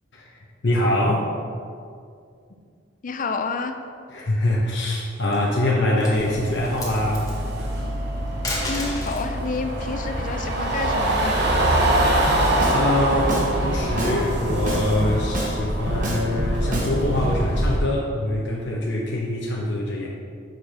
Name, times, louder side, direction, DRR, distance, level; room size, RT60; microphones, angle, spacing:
voice 1, 0.1-1.3 4.1-7.3 12.7-20.1, left 1 dB, 70° left, -4 dB, 0.8 m, -24 dB
voice 2, 3.0-3.7 8.7-11.3, left 4 dB, 45° left, 7 dB, 0.5 m, -29 dB
sound 1, 5.0-5.5 5.9-6.2 6.6-7.3 8.3-9.3 10.8-12.0, left 1 dB, 20° left, 1.6 m, -32 dB
sound 2, 6.1-17.8, right 1 dB, 60° right, 1.0 m, -24 dB
Drum kit, 12.3-12.8 13.1-14.2 14.5-15.5 15.9-16.9 17.2-17.4, right 1 dB, 45° right, 1.3 m, -27 dB
6.6 x 4.5 x 5.0 m, 2.2 s
head